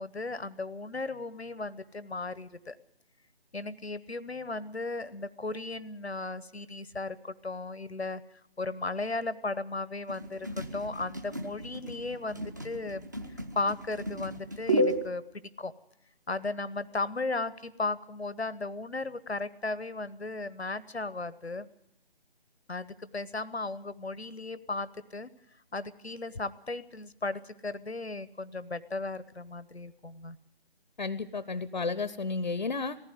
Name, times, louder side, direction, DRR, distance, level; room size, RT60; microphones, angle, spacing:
voice 1, 0.0-2.8 3.5-8.2 8.6-15.7 16.3-21.7 22.7-25.3 25.7-30.4, left 3 dB, 90° left, 16 dB, 1.0 m, -36 dB
sound 1, 10.1-15.1, equal, 20° right, 0.7 m, -33 dB
voice 2, 31.0-33.0, left 4 dB, 50° left, 16 dB, 0.7 m, -32 dB
18.5 x 15.0 x 9.4 m, 0.77 s
figure-of-eight pair, 150°, 31 cm